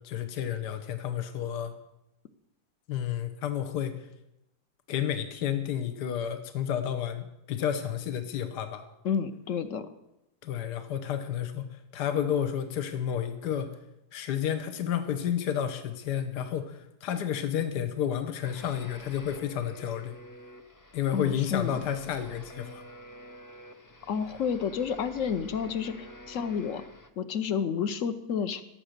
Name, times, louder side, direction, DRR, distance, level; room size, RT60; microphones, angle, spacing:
voice 1, 0.0-1.7 2.9-4.1 4.9-8.9 10.4-13.7 14.1-20.2 20.9-22.8, left 9 dB, 80° left, 9 dB, 1.5 m, -31 dB
voice 2, 9.0-9.9 21.1-21.8 24.1-26.8 27.2-28.6, left 7 dB, 60° left, 11 dB, 1.0 m, -30 dB
sound 1, 18.4-27.1, equal, 30° left, 0.3 m, -49 dB
16.5 x 7.5 x 6.6 m, 0.88 s
omnidirectional pair, 1.8 m